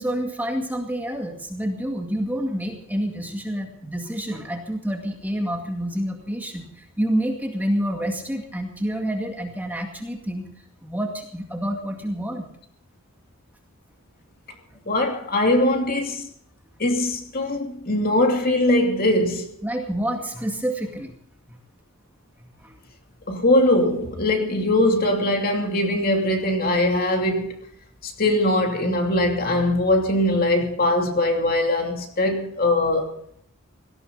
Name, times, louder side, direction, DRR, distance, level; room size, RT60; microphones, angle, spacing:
voice 1, 0.0-10.5 10.8-12.5 19.6-21.1 21.5-21.6 22.6-22.8, equal, 10° right, 2.1 m, -28 dB
voice 2, 14.9-16.3 16.8-19.5 23.3-27.6 28.0-33.1, left 1 dB, 45° left, 2.7 m, -21 dB
18.0 x 17.0 x 4.0 m
head